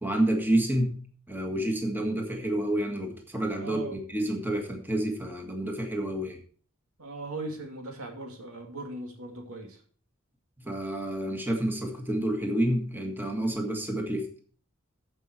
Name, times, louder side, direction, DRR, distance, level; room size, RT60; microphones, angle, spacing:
voice 1, 0.0-1.0 1.3-6.4 10.6-14.3, right 1 dB, 10° right, 2 dB, 1.7 m, -29 dB
voice 2, 3.6-4.0 7.0-9.8, right 2 dB, 80° right, 2 dB, 2.5 m, -39 dB
14.5 x 5.6 x 4.5 m, 0.44 s
head